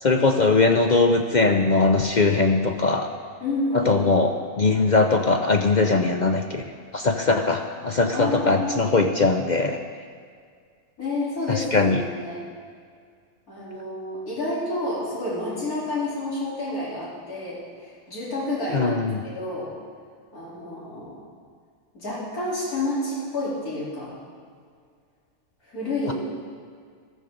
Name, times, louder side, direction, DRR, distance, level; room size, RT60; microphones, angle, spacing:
voice 1, 0.0-3.1 3.7-6.6 6.9-9.8 11.5-12.0 18.7-19.2 26.1-26.2, left 3 dB, 50° left, 4 dB, 0.5 m, -20 dB
voice 2, 3.4-4.0 8.1-8.9 11.0-12.4 13.5-19.0 19.2-19.7 20.3-21.2 21.9-24.1 25.6-26.1, left 2 dB, 85° left, -9 dB, 4.1 m, -29 dB
14.0 x 13.5 x 3.8 m, 2.1 s
omnidirectional pair, 1.5 m